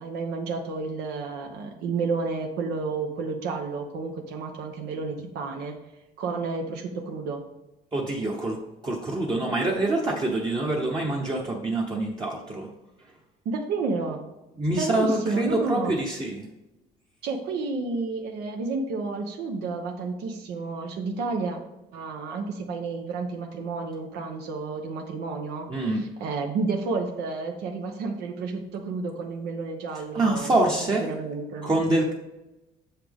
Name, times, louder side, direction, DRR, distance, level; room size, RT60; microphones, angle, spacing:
voice 1, 0.0-5.7 6.2-7.4 13.4-14.2 14.8-15.9 17.2-21.6 21.9-25.7 25.9-31.7, right 4 dB, 85° right, 2 dB, 0.9 m, -31 dB
voice 2, 7.9-8.6 8.8-12.7 14.6-16.5 25.7-26.0 30.1-31.1 31.6-32.1, right 2 dB, 25° right, -3 dB, 0.9 m, -25 dB
7.2 x 5.8 x 3.5 m, 0.96 s
cardioid pair, 125°, 17 cm